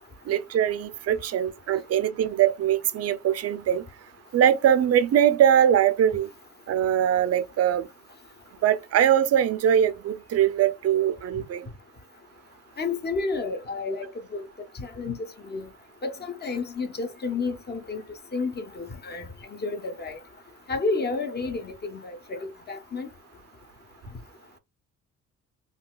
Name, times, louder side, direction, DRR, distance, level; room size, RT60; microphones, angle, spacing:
voice 1, 0.3-3.8 4.3-6.3 6.7-7.9 8.6-11.6, right 10 dB, 55° right, 0.5 m, -22 dB
voice 2, 12.8-14.4 14.8-15.2 15.5-15.7 16.0-18.0 18.3-19.3 19.6-20.2 20.7-23.1, left 3 dB, 35° left, 0.7 m, -31 dB
3.8 x 2.3 x 2.3 m
cardioid pair, 90°, 30 cm